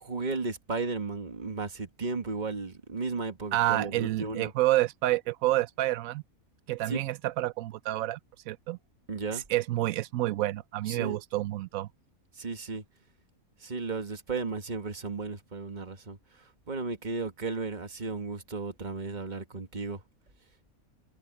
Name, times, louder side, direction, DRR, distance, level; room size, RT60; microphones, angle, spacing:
voice 1, 0.0-4.5 6.9-7.0 9.1-9.4 10.9-11.2 12.4-12.8 13.6-16.2 16.7-20.0, right 4 dB, 30° right, 1.9 m, -34 dB
voice 2, 3.5-6.2 6.7-8.2 8.5-8.8 9.5-11.9, right 16 dB, 75° right, 1.0 m, -28 dB
omnidirectional pair, 1.5 m